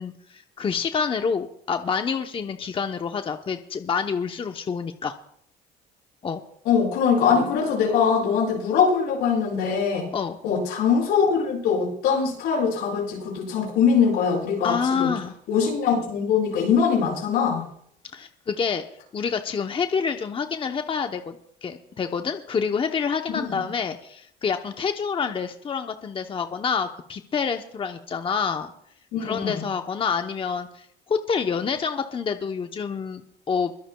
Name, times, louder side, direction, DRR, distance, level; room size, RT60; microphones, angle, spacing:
voice 1, 0.0-5.1 6.2-6.4 10.1-10.4 14.6-15.3 18.1-18.8 19.1-28.7 29.2-33.7, left 6 dB, 30° left, 6 dB, 0.8 m, -27 dB
voice 2, 6.6-10.1 10.4-15.1 15.5-17.6 23.5-23.6 29.1-29.6, left 6 dB, 90° left, -3 dB, 6.6 m, -22 dB
23.0 x 16.0 x 2.3 m, 0.69 s
cardioid pair, 110°, 17 cm